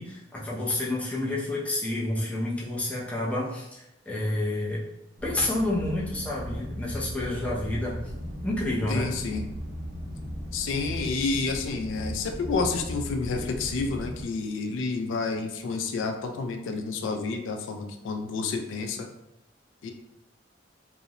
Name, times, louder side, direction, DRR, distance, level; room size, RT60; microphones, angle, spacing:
voice 1, 0.0-3.8 4.1-4.8 5.2-7.9 8.4-9.1, left 1 dB, 5° left, -6 dB, 0.5 m, -29 dB
sound 1, 5.2-14.2, equal, 35° right, 1.0 m, -37 dB
voice 2, 8.9-9.4 10.5-19.1 19.8-19.9, left 4 dB, 85° left, 4 dB, 0.3 m, -29 dB
2.4 x 2.0 x 2.8 m, 0.86 s
head